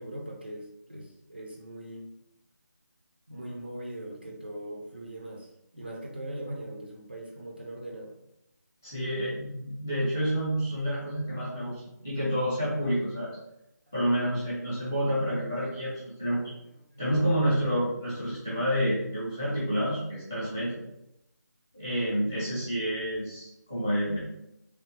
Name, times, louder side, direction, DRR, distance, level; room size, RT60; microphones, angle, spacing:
voice 1, 0.0-2.1 3.3-8.1 16.5-16.6 16.9-17.0, right 1 dB, 30° right, -1 dB, 0.5 m, -40 dB
voice 2, 8.8-13.4 13.9-16.5 17.0-20.8 21.7-24.2, equal, 5° left, -11 dB, 0.6 m, -29 dB
3.3 x 3.2 x 3.1 m, 0.84 s
figure-of-eight pair, 180°, 10 cm